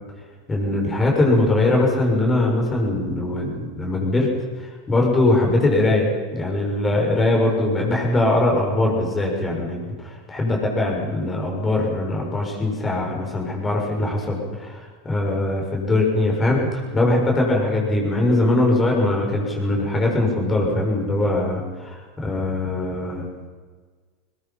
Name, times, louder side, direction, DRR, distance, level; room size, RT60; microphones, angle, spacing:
voice 1, 0.5-4.3 4.6-9.8 10.3-23.2, left 2 dB, 20° left, 0 dB, 6.8 m, -21 dB
22.0 x 21.0 x 5.9 m, 1.4 s
hypercardioid pair, 85°, 0 cm